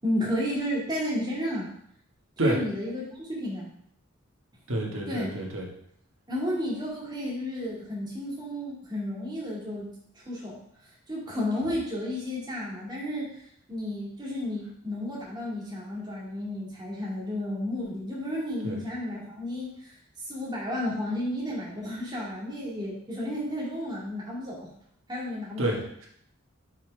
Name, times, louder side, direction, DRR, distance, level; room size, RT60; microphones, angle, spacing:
voice 1, 0.0-1.7 2.4-3.7 5.1-5.3 6.3-9.9 10.1-10.6 11.1-19.9 20.3-24.7 25.1-25.7, left 1 dB, 20° right, -5 dB, 2.2 m, -32 dB
voice 2, 4.7-5.7 18.6-18.8 25.6-26.1, right 1 dB, 70° right, -1 dB, 1.7 m, -29 dB
5.7 x 5.2 x 4.7 m, 0.69 s
head